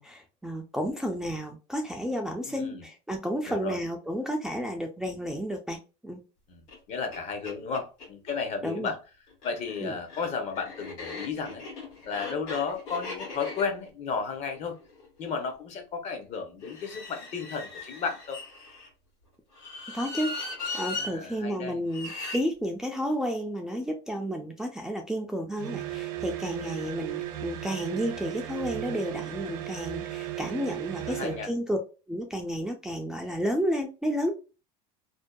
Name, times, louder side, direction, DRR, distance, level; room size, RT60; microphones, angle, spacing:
voice 1, 0.0-6.2 8.6-8.9 9.8-9.9 19.9-20.3 20.7-31.8 32.1-34.3, equal, 5° right, 0.3 m, -31 dB
voice 2, 2.4-2.9 3.5-3.8 6.5-9.0 9.4-11.6 12.1-14.8 15.2-18.4 20.9-21.8 31.1-31.5, left 5 dB, 45° left, 0.7 m, -33 dB
sound 1, 6.7-6.8 7.1-7.2 7.4-8.4 9.3-15.5 16.6-18.9 19.5-21.1 21.9-22.4, left 3 dB, 75° left, 1.2 m, -39 dB
sound 2, 25.6-31.5, right 13 dB, 75° right, 0.4 m, -35 dB
2.6 x 2.1 x 2.2 m
supercardioid pair, 110°, 16 cm